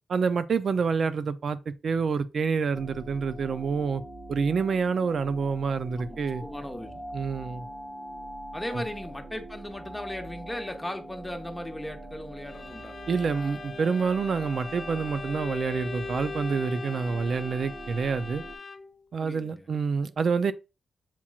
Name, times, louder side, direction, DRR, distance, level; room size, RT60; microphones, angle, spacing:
voice 1, 0.1-4.0 4.3-6.4 7.1-7.7 8.7-8.8 13.1-18.4 19.1-20.5, right 5 dB, 65° right, 0.4 m, -27 dB
sound 1, 2.7-18.6, right 1 dB, 20° right, 1.1 m, -43 dB
voice 2, 6.0-6.9 8.5-12.9 19.2-19.7, left 1 dB, 10° left, 0.9 m, -37 dB
Bowed string instrument, 12.5-19.0, left 4 dB, 50° left, 0.4 m, -40 dB
7.2 x 2.9 x 2.4 m
cardioid pair, 65°, 0 cm